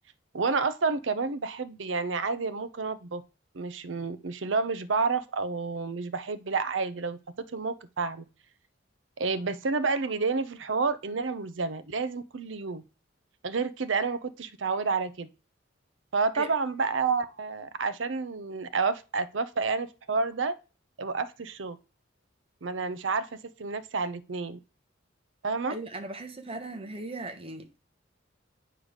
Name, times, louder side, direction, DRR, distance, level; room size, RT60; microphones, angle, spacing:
voice 1, 0.3-3.2 3.5-7.2 7.5-8.3 9.2-12.8 13.4-15.3 16.1-20.5 21.0-21.8 22.6-24.6 25.4-25.8, right 4 dB, 80° right, 0.7 m, -29 dB
voice 2, 25.7-27.8, right 2 dB, 30° right, 1.2 m, -38 dB
8.9 x 3.3 x 6.4 m
head